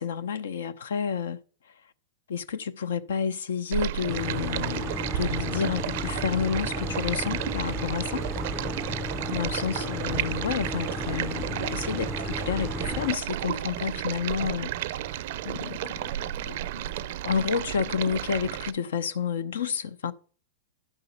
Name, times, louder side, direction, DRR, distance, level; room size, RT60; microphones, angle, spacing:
voice 1, 0.0-1.4 2.3-8.3 9.3-14.7 15.1-15.2 15.4-16.1 16.5-16.9 17.2-20.1, left 6 dB, 80° left, 0.6 m, -30 dB
Stream, 3.7-18.7, right 13 dB, 60° right, 0.4 m, -32 dB
sound 1, 4.1-13.1, left 2 dB, 5° left, 0.4 m, -34 dB
11.0 x 3.9 x 5.3 m
hypercardioid pair, 130°, 0 cm